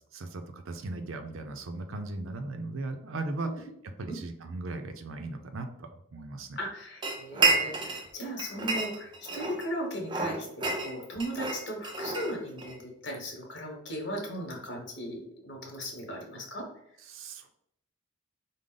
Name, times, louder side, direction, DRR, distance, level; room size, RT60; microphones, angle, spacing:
voice 1, 0.1-6.6 17.1-17.5, right 2 dB, 80° right, 6 dB, 0.5 m, -38 dB
voice 2, 6.6-16.7, equal, 55° left, 0 dB, 1.1 m, -37 dB
sound 1, 7.0-8.1 8.4-9.7 10.1-12.8, right 3 dB, 20° right, 0.5 m, -30 dB
5.0 x 2.1 x 3.8 m, 0.73 s
head